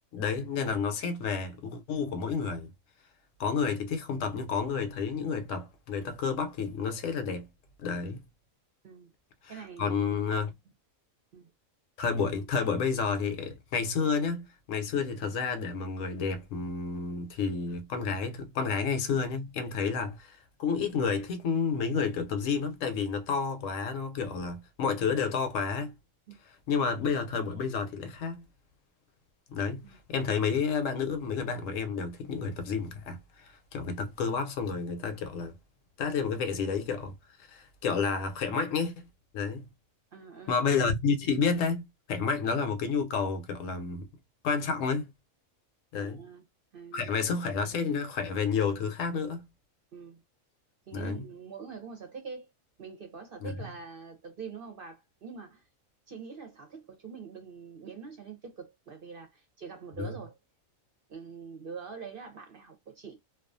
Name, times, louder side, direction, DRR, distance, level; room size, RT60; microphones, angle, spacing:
voice 1, 0.1-2.7 3.4-7.5 7.8-8.2 9.4-10.5 12.0-25.9 26.4-28.4 29.5-35.5 36.0-37.1 37.4-38.9 39.3-39.7 40.5-41.8 42.1-44.1 44.4-45.1 45.9-46.2 46.9-49.5 50.9-51.2 53.4-53.5 60.0-60.2, left 5 dB, 75° left, 0.9 m, -30 dB
voice 2, 9.5-10.5 11.3-11.5 26.3-26.4 29.8-30.0 40.1-40.6 46.0-46.4 46.7-47.3 49.9-50.2 50.9-52.5 52.8-55.6 56.1-60.3 61.1-63.2, right 5 dB, 50° right, 0.7 m, -44 dB
2.3 x 2.3 x 2.5 m
omnidirectional pair, 1.4 m